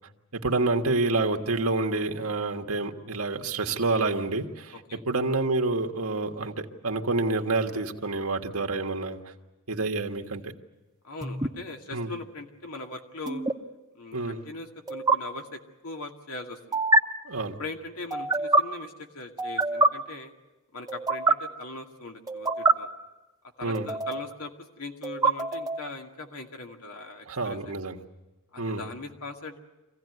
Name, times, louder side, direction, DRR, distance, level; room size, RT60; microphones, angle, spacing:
voice 1, 0.3-9.3 9.7-10.5 11.9-12.1 14.1-14.4 17.3-17.6 23.6-23.9 27.3-28.0 28.6-28.8, right 3 dB, 85° right, 3 dB, 1.6 m, -28 dB
voice 2, 11.0-13.4 13.9-16.8 17.6-20.3 20.7-22.9 23.6-24.5 24.8-27.6 28.5-29.6, left 2 dB, 90° left, 3 dB, 2.3 m, -40 dB
sound 1, 11.2-11.5 13.3-13.5 14.9-15.2 16.7-17.0 18.1-18.6 19.4-19.9 20.9-21.3 22.3-22.7 23.7-24.3 25.0-25.9, right 2 dB, 15° right, 0.9 m, -24 dB
25.0 x 16.5 x 9.4 m, 1.1 s
head